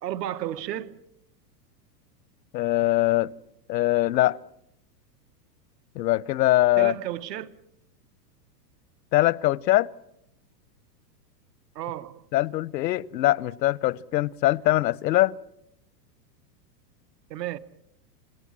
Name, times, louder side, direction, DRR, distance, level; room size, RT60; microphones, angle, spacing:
voice 1, 0.0-1.0 6.8-7.5 11.7-12.3 17.3-17.6, right 12 dB, 75° right, 1.3 m, -32 dB
voice 2, 2.5-3.3 3.7-4.4 6.0-7.0 9.1-9.9 12.3-15.3, left 16 dB, 85° left, 0.8 m, -22 dB
29.0 x 17.5 x 7.4 m
supercardioid pair, 165°, 49 cm